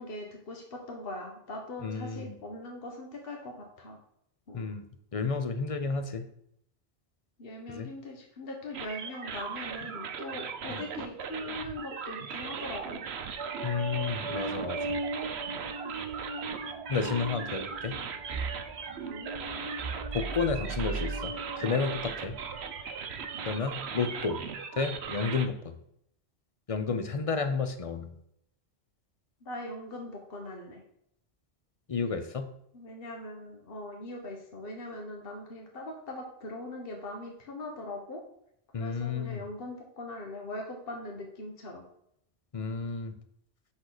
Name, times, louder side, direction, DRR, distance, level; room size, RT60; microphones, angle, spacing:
voice 1, 0.0-4.0 4.5-4.7 7.4-13.0 14.3-14.7 17.9-18.1 19.1-19.3 29.4-30.8 32.7-38.2 38.7-41.8, left 1 dB, 60° left, 1 dB, 1.4 m, -41 dB
voice 2, 1.8-2.4 4.5-4.9 5.1-6.3 7.7-7.9 10.7-10.8 13.6-15.0 16.9-17.9 20.1-22.4 23.5-24.4 24.7-25.8 26.7-28.1 31.9-32.5 38.7-39.4 42.5-43.1, left 5 dB, 35° left, 8 dB, 0.8 m, -31 dB
sound 1, 8.7-25.5, right 6 dB, 75° right, 1.0 m, -39 dB
sound 2, 13.4-23.7, right 3 dB, 45° right, 0.4 m, -38 dB
7.7 x 6.3 x 4.0 m, 0.75 s
omnidirectional pair, 1.1 m